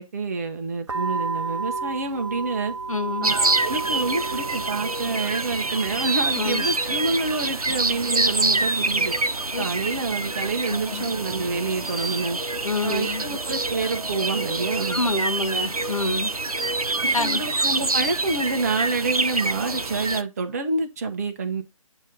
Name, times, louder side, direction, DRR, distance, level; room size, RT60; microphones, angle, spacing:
voice 1, 0.0-2.7 3.2-9.1 9.6-12.4 12.8-15.0 17.0-21.6, right 3 dB, 25° right, 1.0 m, -27 dB
sound 1, 0.9-11.5, right 4 dB, 55° right, 0.9 m, -34 dB
voice 2, 2.9-3.3 6.3-6.7 9.5-9.7 10.7-11.1 12.6-13.2 14.9-16.3 17.1-17.4, left 2 dB, 70° left, 1.2 m, -27 dB
sound 2, 3.2-20.2, right 2 dB, 85° right, 0.8 m, -26 dB
8.8 x 3.0 x 5.2 m
figure-of-eight pair, 150°, 18 cm